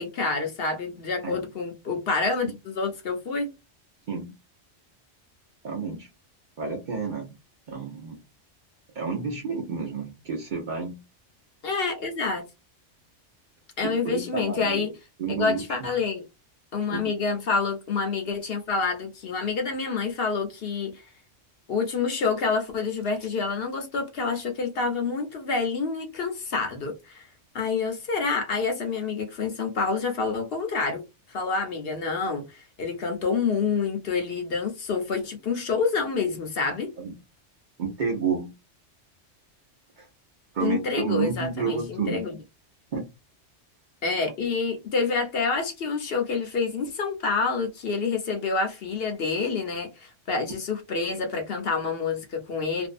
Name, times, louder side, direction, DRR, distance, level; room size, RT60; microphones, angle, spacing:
voice 1, 0.0-3.5 11.6-12.5 13.8-14.9 15.3-16.2 16.7-21.0 21.7-27.3 27.5-31.0 31.3-36.9 40.6-42.4 44.0-52.9, left 4 dB, 60° left, 0.8 m, -28 dB
voice 2, 5.6-6.1 6.6-7.3 7.7-8.2 8.9-11.0 13.8-14.9 15.2-15.6 16.9-17.0 37.0-37.1 37.8-38.5 40.0-40.1 40.5-42.2 42.9-43.1, right 5 dB, 50° right, 0.7 m, -30 dB
2.6 x 2.1 x 2.5 m
omnidirectional pair, 1.2 m